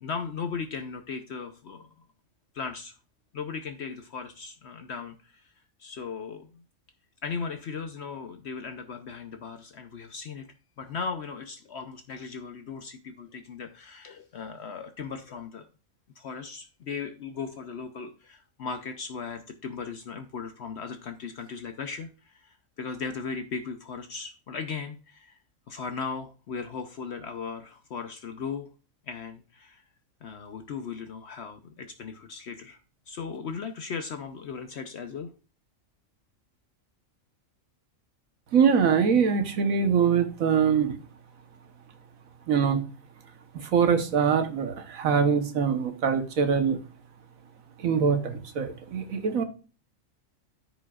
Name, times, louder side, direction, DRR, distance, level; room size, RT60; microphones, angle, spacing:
voice 1, 0.0-1.9 2.5-2.9 3.3-5.5 5.8-6.5 7.2-15.7 16.2-25.4 25.7-28.7 29.1-29.8 30.2-32.8 33.1-35.3, left 5 dB, 60° left, 7 dB, 0.9 m, -37 dB
voice 2, 38.5-41.0 42.5-42.8 43.5-46.8 47.8-49.4, right 6 dB, 85° right, 7 dB, 1.5 m, -23 dB
13.5 x 5.2 x 2.4 m, 0.35 s
omnidirectional pair, 1.4 m